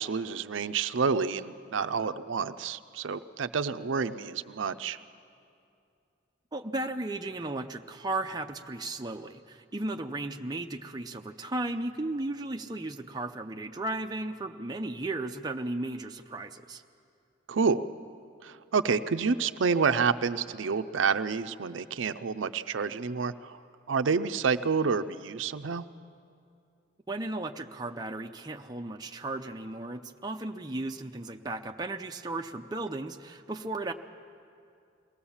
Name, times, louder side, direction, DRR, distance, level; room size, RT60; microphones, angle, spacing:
voice 1, 0.0-5.0 17.5-17.8 18.4-23.6 23.9-25.8, right 5 dB, 80° right, 11 dB, 0.5 m, -29 dB
voice 2, 6.5-16.8 27.1-33.9, right 2 dB, 20° right, 4 dB, 0.6 m, -35 dB
22.5 x 17.0 x 7.2 m, 2.5 s
head